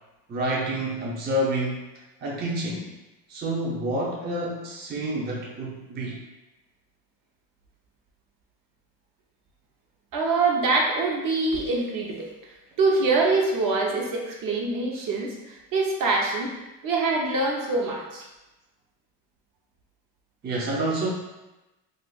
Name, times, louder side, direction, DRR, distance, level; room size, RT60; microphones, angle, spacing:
voice 1, 0.3-1.8 2.2-2.9 3.3-6.2 20.4-21.1, right 1 dB, 25° right, -3 dB, 0.5 m, -28 dB
voice 2, 10.1-12.3 12.8-16.5 16.8-18.3, right 3 dB, 55° right, -1 dB, 0.8 m, -24 dB
2.4 x 2.4 x 3.8 m, 1.0 s
cardioid pair, 105°, 40 cm